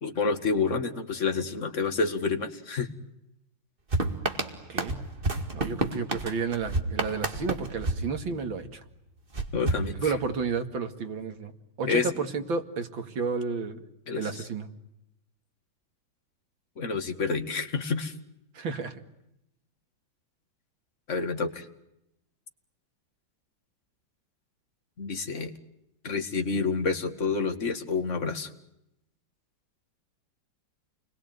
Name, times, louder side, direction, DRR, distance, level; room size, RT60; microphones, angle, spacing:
voice 1, 0.0-2.9 9.5-10.1 11.9-12.1 14.1-14.4 16.8-18.1 21.1-21.7 25.0-25.5 26.0-28.5, left 4 dB, 35° left, 7 dB, 2.4 m, -28 dB
sound 1, 3.9-8.8 9.3-10.6, right 2 dB, 25° right, 2.2 m, -31 dB
voice 2, 5.5-8.8 9.9-11.5 11.8-14.7 18.5-19.0, right 4 dB, 75° right, 7 dB, 2.9 m, -31 dB
29.0 x 21.5 x 9.4 m, 0.85 s
omnidirectional pair, 2.2 m